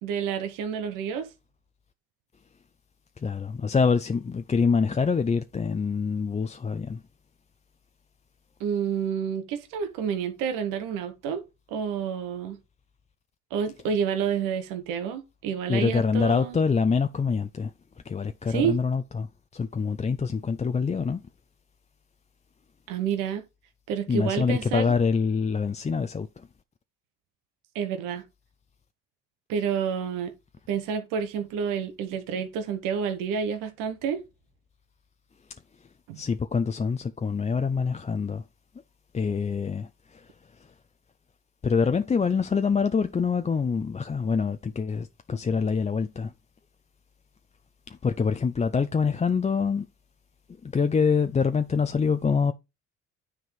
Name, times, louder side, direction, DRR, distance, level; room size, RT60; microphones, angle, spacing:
voice 1, 0.0-1.3 8.6-11.4 11.7-12.6 13.5-16.6 18.5-18.8 22.9-23.4 23.9-24.9 27.7-28.2 29.5-30.3 30.7-34.2 36.1-36.2, right 7 dB, 85° right, 1.2 m, -29 dB
voice 2, 3.2-7.0 15.7-17.7 18.1-19.3 19.5-21.2 24.1-26.3 36.2-38.4 39.1-39.9 41.6-46.3 48.0-49.9 50.7-52.5, left 5 dB, 20° left, 0.5 m, -25 dB
9.5 x 3.8 x 4.7 m
supercardioid pair, 65°, 32 cm